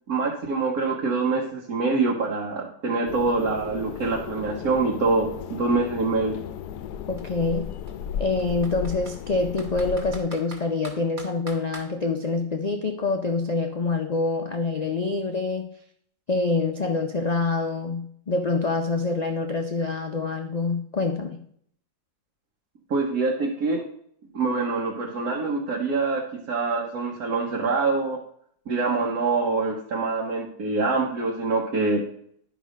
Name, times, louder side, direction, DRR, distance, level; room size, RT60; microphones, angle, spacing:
voice 1, 0.1-6.4 22.9-23.8 24.3-28.2 28.7-32.0, right 3 dB, 65° right, -1 dB, 1.6 m, -25 dB
sound 1, 3.1-10.2, left 9 dB, 80° left, 1.1 m, -35 dB
Computer keyboard, 3.6-3.7 4.0-5.9 6.7-6.9 7.2-7.3 7.9-9.2 9.6-11.9, right 2 dB, 30° right, 1.5 m, -44 dB
voice 2, 7.1-7.7 8.2-15.7 16.3-21.4, left 3 dB, 55° left, 4 dB, 0.4 m, -26 dB
11.0 x 5.1 x 5.1 m, 0.66 s
omnidirectional pair, 1.7 m